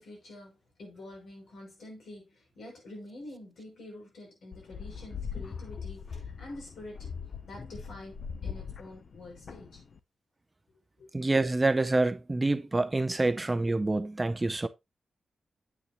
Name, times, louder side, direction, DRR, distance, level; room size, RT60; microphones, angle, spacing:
voice 1, 0.0-7.1 7.4-9.8 11.0-11.1, left 1 dB, 75° left, 6.0 m, -47 dB
sound 1, 4.5-10.0, left 6 dB, 45° left, 0.7 m, -41 dB
voice 2, 11.1-14.7, right 2 dB, 15° right, 0.6 m, -27 dB
9.0 x 8.5 x 3.0 m
wide cardioid pair, 165°, 0 cm